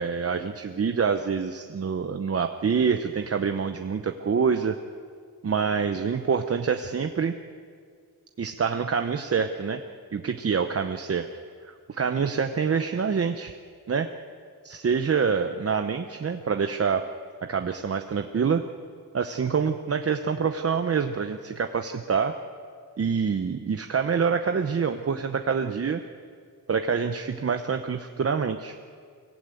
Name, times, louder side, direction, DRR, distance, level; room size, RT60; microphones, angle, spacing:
voice 1, 0.0-4.7 5.4-7.3 8.4-9.8 10.1-11.3 11.6-13.5 13.9-14.1 14.6-17.0 17.4-18.6 19.1-22.4 23.0-26.0 26.7-28.8, right 6 dB, 40° right, 7 dB, 0.8 m, -26 dB
24.0 x 15.5 x 9.1 m, 2.1 s
wide cardioid pair, 170°, 37 cm